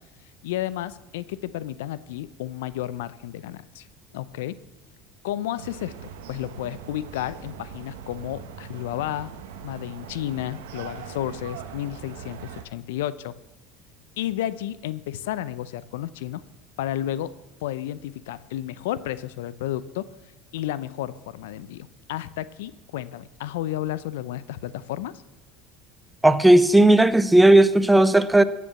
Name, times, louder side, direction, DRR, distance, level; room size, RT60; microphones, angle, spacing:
voice 1, 0.4-3.9 4.1-4.6 5.2-5.9 6.3-9.3 9.6-13.3 14.2-16.4 16.8-17.3 17.6-20.1 20.5-25.2, left 13 dB, 85° left, 17 dB, 0.6 m, -32 dB
sound 1, 5.6-12.6, right 7 dB, 85° right, 1.2 m, -41 dB
voice 2, 26.2-28.4, right 1 dB, 5° right, 14 dB, 0.8 m, -15 dB
14.5 x 8.4 x 7.0 m, 1.0 s
hypercardioid pair, 85°, 0 cm